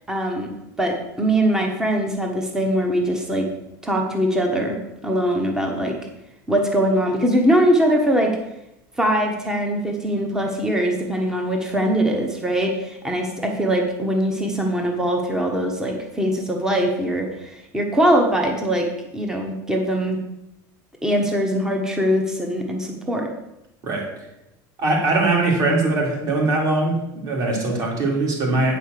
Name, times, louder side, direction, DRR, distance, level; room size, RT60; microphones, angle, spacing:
voice 1, 0.1-0.5 0.8-3.5 3.8-4.8 5.0-6.0 6.5-8.4 9.0-20.2 21.0-23.3, right 1 dB, 5° right, 2 dB, 1.1 m, -22 dB
voice 2, 24.8-28.8, right 2 dB, 35° right, -1 dB, 3.1 m, -21 dB
9.0 x 5.5 x 6.6 m, 0.88 s
supercardioid pair, 155°, 10 cm